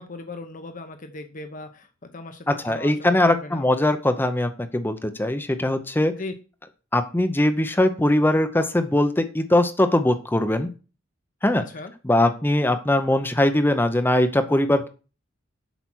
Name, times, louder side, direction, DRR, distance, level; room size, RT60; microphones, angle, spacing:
voice 1, 0.0-3.6 6.2-6.3 11.6-11.9, left 2 dB, 45° left, 7 dB, 0.9 m, -38 dB
voice 2, 2.5-6.1 6.9-10.7 11.4-11.6 12.0-14.9, left 1 dB, 10° left, 8 dB, 0.7 m, -21 dB
8.0 x 5.9 x 6.1 m, 0.35 s
head